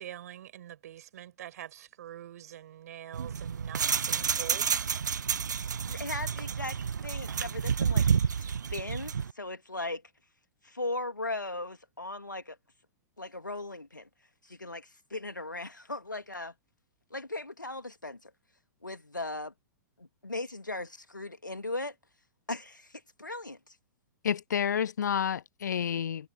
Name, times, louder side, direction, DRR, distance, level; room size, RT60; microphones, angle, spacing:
voice 1, 0.0-4.9, right 11 dB, 60° right, 6.3 m, -45 dB
sound 1, 3.1-9.3, right 7 dB, 75° right, 0.7 m, -30 dB
voice 2, 5.9-10.0 10.6-12.6 13.2-14.1 14.4-16.5 17.1-18.3 18.8-19.5 20.0-22.0 22.5-23.6, left 2 dB, 90° left, 2.5 m, -38 dB
voice 3, 24.2-26.3, left 8 dB, 70° left, 0.5 m, -29 dB
figure-of-eight pair, 105°, 10 cm